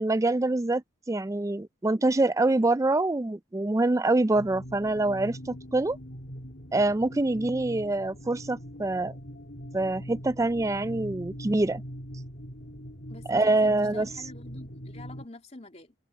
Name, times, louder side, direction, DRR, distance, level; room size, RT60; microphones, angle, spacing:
voice 1, 0.0-6.0 6.7-9.1 9.7-11.8 13.3-14.1, right 2 dB, 15° right, 0.4 m, -25 dB
sound 1, 4.3-15.2, equal, 55° left, 4.0 m, -42 dB
voice 2, 13.1-15.9, left 2 dB, 30° left, 3.0 m, -46 dB
head